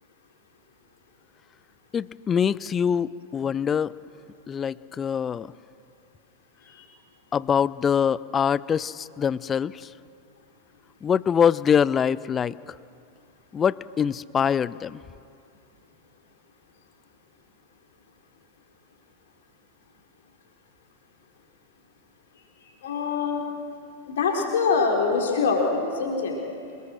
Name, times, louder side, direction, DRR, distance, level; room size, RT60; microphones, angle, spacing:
voice 1, 1.9-3.9 4.5-5.5 7.3-9.9 11.0-12.5 13.5-15.0, left 7 dB, 20° left, 20 dB, 0.5 m, -24 dB
voice 2, 22.8-23.4 24.1-26.4, left 4 dB, 60° left, 0 dB, 4.3 m, -24 dB
26.5 x 20.5 x 6.6 m, 2.5 s
figure-of-eight pair, 90°, 0 cm